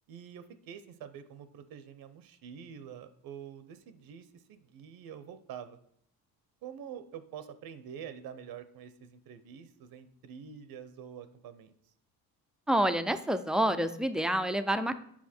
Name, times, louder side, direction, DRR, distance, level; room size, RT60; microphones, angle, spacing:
voice 1, 0.1-5.8 6.6-11.7, right 8 dB, 70° right, 12 dB, 0.8 m, -46 dB
voice 2, 12.7-15.0, right 1 dB, ahead, 10 dB, 0.4 m, -28 dB
7.4 x 5.7 x 4.3 m, 0.69 s
cardioid pair, 95°, 37 cm